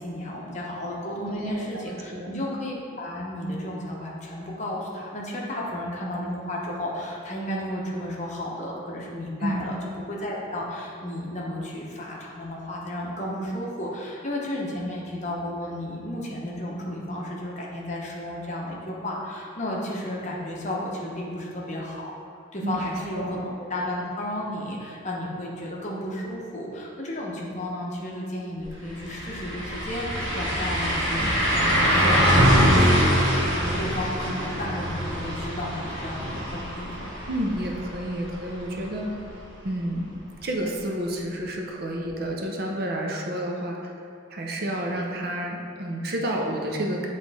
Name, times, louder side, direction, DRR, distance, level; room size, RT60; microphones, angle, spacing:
voice 1, 0.0-22.1 22.5-37.1, left 1 dB, 35° left, -3 dB, 0.9 m, -33 dB
voice 2, 1.3-2.3 9.4-9.7 22.6-22.8 23.2-23.4 37.3-39.3 39.6-40.1 40.4-43.9 44.3-47.1, right 1 dB, 50° right, 0 dB, 0.6 m, -30 dB
sound 1, 28.6-28.7 29.0-38.8 39.2-39.3 42.1-42.2, equal, 75° right, 1.2 m, -23 dB
8.0 x 3.3 x 4.1 m, 2.6 s
head